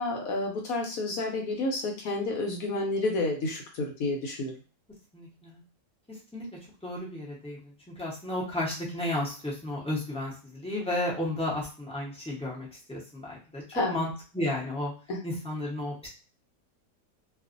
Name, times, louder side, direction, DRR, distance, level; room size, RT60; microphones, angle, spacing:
voice 1, 0.0-4.5 13.7-14.0 15.1-15.2, left 2 dB, 70° left, 2 dB, 1.0 m, -30 dB
voice 2, 5.1-5.6 6.3-6.4 6.8-7.7 8.0-14.1 14.3-14.9 15.2-16.1, left 1 dB, 5° left, -5 dB, 0.4 m, -33 dB
2.5 x 2.4 x 2.5 m, 0.36 s
omnidirectional pair, 1.8 m